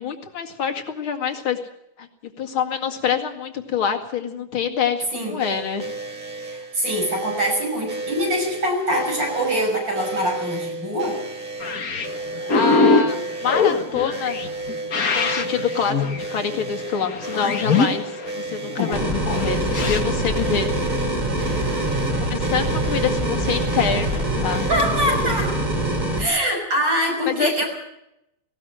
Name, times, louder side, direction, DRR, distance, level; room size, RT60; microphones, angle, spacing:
voice 1, 0.0-1.6 2.0-5.9 12.5-14.4 14.9-20.7 22.2-24.6 25.1-25.2 27.3-27.5, left 7 dB, 70° left, 5 dB, 2.9 m, -26 dB
sound 1, 5.4-24.7, right 2 dB, 35° right, 3.0 m, -33 dB
voice 2, 6.4-11.2 24.7-25.5 26.2-27.7, equal, 55° right, 1 dB, 6.7 m, -24 dB
sound 2, 11.6-20.0, left 4 dB, 45° left, 1.9 m, -23 dB
sound 3, 18.9-26.2, right 1 dB, 20° right, 3.1 m, -24 dB
19.0 x 18.0 x 7.8 m, 0.82 s
omnidirectional pair, 2.4 m